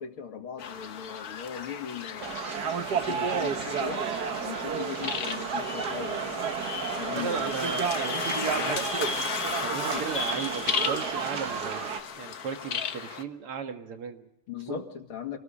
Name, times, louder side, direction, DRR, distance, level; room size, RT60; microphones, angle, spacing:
voice 1, 0.0-2.4 2.9-4.0 4.4-6.4 7.0-7.6 9.9-10.1 14.5-15.4, left 8 dB, 70° left, 5 dB, 2.9 m, -38 dB
sound 1, 0.6-13.2, left 7 dB, 50° left, 1.4 m, -36 dB
sound 2, 2.2-12.0, right 6 dB, 50° right, 1.6 m, -32 dB
sound 3, 4.9-5.0 5.3-11.7, left 1 dB, 15° left, 2.0 m, -38 dB
voice 2, 7.0-9.1 9.4-14.3 14.7-14.8, right 6 dB, 85° right, 6 dB, 2.7 m, -36 dB
27.0 x 19.5 x 5.0 m, 0.77 s
omnidirectional pair, 2.4 m